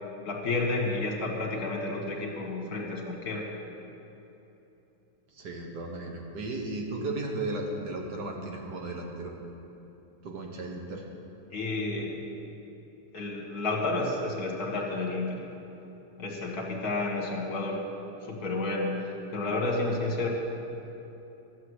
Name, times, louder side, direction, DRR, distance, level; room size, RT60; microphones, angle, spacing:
voice 1, 0.3-3.5 11.5-12.1 13.1-15.5 16.2-17.8 18.3-20.3, left 2 dB, 65° left, 0 dB, 2.2 m, -31 dB
voice 2, 5.3-9.4 10.2-11.0, right 2 dB, 75° right, 1 dB, 2.0 m, -35 dB
12.5 x 7.4 x 8.2 m, 2.9 s
omnidirectional pair, 1.8 m